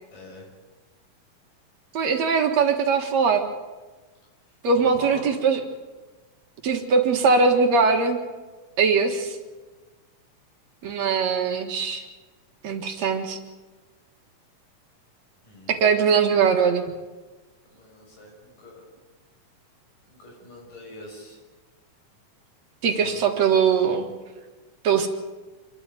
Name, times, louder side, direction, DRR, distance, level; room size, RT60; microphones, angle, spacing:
voice 1, 0.1-0.5 4.8-5.4 15.4-15.8 17.7-18.9 20.0-21.4 22.8-23.3, equal, 80° left, 0 dB, 7.6 m, -42 dB
voice 2, 1.9-3.4 4.6-5.6 6.6-8.2 8.8-9.4 10.8-12.0 12.6-13.4 15.7-16.9 22.8-24.1 24.8-25.1, right 5 dB, 60° right, 4 dB, 2.6 m, -21 dB
26.5 x 13.0 x 9.1 m, 1.3 s
omnidirectional pair, 3.7 m